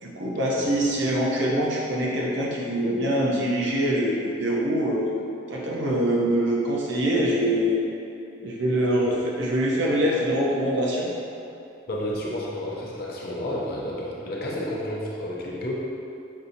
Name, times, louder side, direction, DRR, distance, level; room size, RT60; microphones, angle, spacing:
voice 1, 0.0-5.1 5.5-7.8 8.4-11.1, equal, 70° right, -4 dB, 0.7 m, -24 dB
voice 2, 0.5-1.0 9.0-9.2 11.9-15.8, left 1 dB, 50° left, -4 dB, 0.6 m, -31 dB
5.3 x 2.8 x 2.6 m, 2.7 s
head